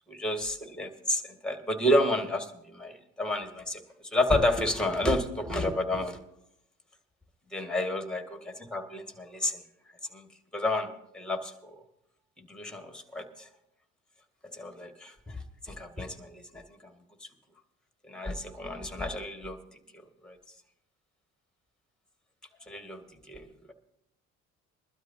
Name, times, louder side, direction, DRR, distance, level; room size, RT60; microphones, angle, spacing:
voice 1, 0.1-3.8 4.1-6.2 7.5-9.6 10.1-10.3 10.5-11.8 12.4-13.5 14.5-16.9 18.0-19.6 20.2-20.4 22.7-23.7, left 1 dB, ahead, 6 dB, 1.8 m, -31 dB
22.0 x 12.5 x 2.8 m, 0.78 s
hypercardioid pair, 60°, 36 cm